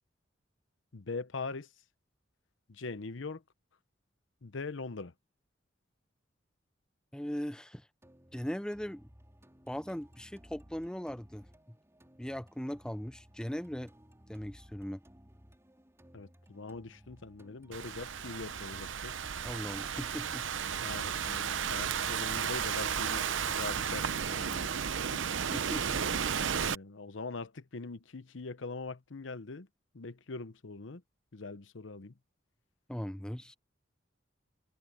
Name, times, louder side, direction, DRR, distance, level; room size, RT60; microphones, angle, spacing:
voice 1, 0.9-1.7 2.7-3.4 4.4-5.1 16.1-19.1 20.8-25.2 26.4-29.7 29.9-31.0 31.3-32.1, left 3 dB, 80° left, 0.9 m, -42 dB
voice 2, 7.1-7.9 8.3-9.1 9.7-11.5 12.2-13.9 14.3-15.0 19.4-20.4 25.5-26.2 32.9-33.5, equal, 5° left, 0.5 m, -39 dB
sound 1, 8.0-26.0, equal, 15° right, 4.7 m, -59 dB
Thunderstorm / Rain, 17.7-26.7, right 7 dB, 85° right, 0.8 m, -33 dB
head